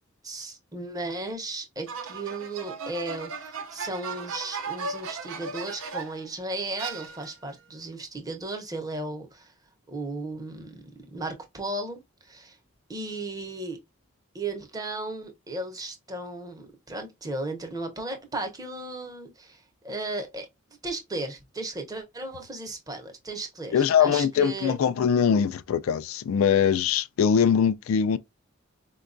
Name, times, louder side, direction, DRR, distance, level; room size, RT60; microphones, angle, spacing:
voice 1, 0.2-9.5 9.9-12.6 12.9-13.8 14.3-20.5 20.8-24.7, right 2 dB, 15° right, 0.7 m, -35 dB
sound 1, 1.9-6.3 6.8-7.5, right 4 dB, 75° right, 0.6 m, -36 dB
voice 2, 23.7-28.2, left 7 dB, 75° left, 0.3 m, -22 dB
4.5 x 2.2 x 2.5 m
head